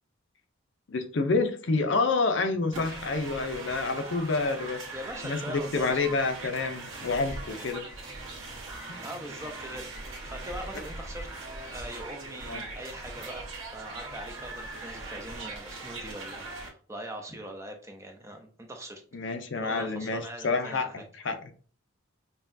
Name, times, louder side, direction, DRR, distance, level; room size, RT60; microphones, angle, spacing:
voice 1, 0.9-4.8 5.2-7.9 8.9-9.0 12.5-12.6 19.1-21.3, left 3 dB, 60° left, 7 dB, 0.5 m, -28 dB
sound 1, 2.7-16.7, right 2 dB, 75° right, 1.3 m, -40 dB
voice 2, 4.9-6.2 9.0-11.3 11.7-13.5 13.7-19.3 19.6-20.9, right 1 dB, 15° right, 3 dB, 0.5 m, -42 dB
5.5 x 2.3 x 2.6 m, 0.40 s
head